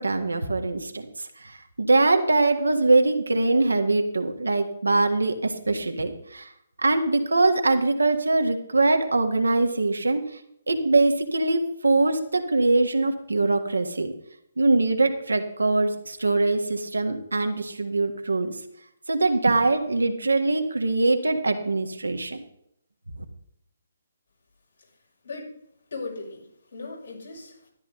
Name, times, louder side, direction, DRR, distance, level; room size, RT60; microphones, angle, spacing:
voice 1, 0.0-6.5 6.8-10.2 10.7-14.1 14.6-18.5 19.1-22.4, right 2 dB, 80° right, 5 dB, 1.7 m, -23 dB
voice 2, 25.2-25.6 25.9-27.7, left 3 dB, 70° left, -3 dB, 6.3 m, -38 dB
13.0 x 11.5 x 3.9 m, 0.72 s
figure-of-eight pair, 135°, 0 cm